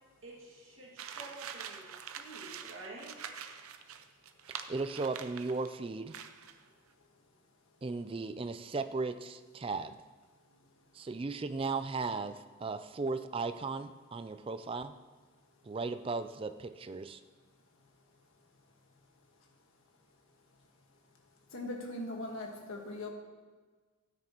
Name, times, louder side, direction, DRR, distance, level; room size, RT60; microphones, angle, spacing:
voice 1, 0.2-1.9 2.1-3.1, right 2 dB, 65° right, -4 dB, 2.1 m, -49 dB
sound 1, 1.0-5.7 6.1-6.6, right 8 dB, 85° right, 0.6 m, -45 dB
voice 2, 4.7-6.2 7.8-10.0 10.9-14.9 15.6-17.2, right 3 dB, 25° right, 11 dB, 0.3 m, -36 dB
voice 3, 21.5-23.1, left 1 dB, 70° left, 1 dB, 1.5 m, -40 dB
13.0 x 9.7 x 3.0 m, 1.4 s
head